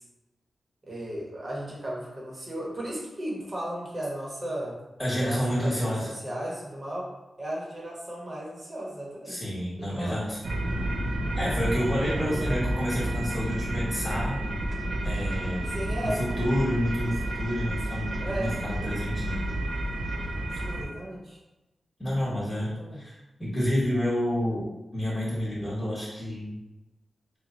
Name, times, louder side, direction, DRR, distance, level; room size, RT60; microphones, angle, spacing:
voice 1, 0.8-4.8 5.2-7.1 7.4-9.5 9.8-10.2 12.2-12.5 15.7-16.2 18.2-18.5 20.5-21.4 22.6-23.0, right 1 dB, 35° right, -3 dB, 1.0 m, -35 dB
voice 2, 5.0-6.1 9.3-10.4 11.3-14.4 15.0-15.7 16.0-18.1 18.4-19.4 22.0-23.1 23.4-24.7 24.9-26.5, equal, 5° left, -8 dB, 1.1 m, -29 dB
sound 1, 10.4-20.8, right 1 dB, 60° right, 0.5 m, -30 dB
3.0 x 2.2 x 3.8 m, 1.0 s
wide cardioid pair, 105°, 0 cm